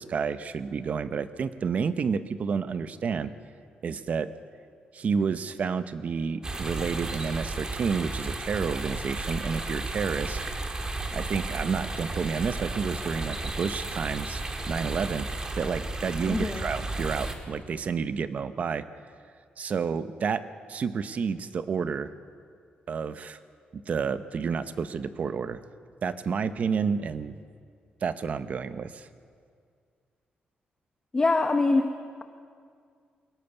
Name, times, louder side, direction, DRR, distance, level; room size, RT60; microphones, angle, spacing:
voice 1, 0.0-3.3 3.8-4.3 4.9-10.4 11.1-14.4 14.7-15.3 15.6-18.8 19.6-20.4 20.7-22.1 22.9-23.4 23.7-25.6 26.0-27.4 28.0-29.1, right 6 dB, 50° right, 12 dB, 0.8 m, -30 dB
sound 1, 6.4-17.3, right 2 dB, 25° right, 1.7 m, -33 dB
voice 2, 16.3-16.7 31.1-31.9, left 3 dB, 20° left, 6 dB, 0.9 m, -23 dB
22.5 x 18.0 x 6.9 m, 2.2 s
wide cardioid pair, 140°, 3 cm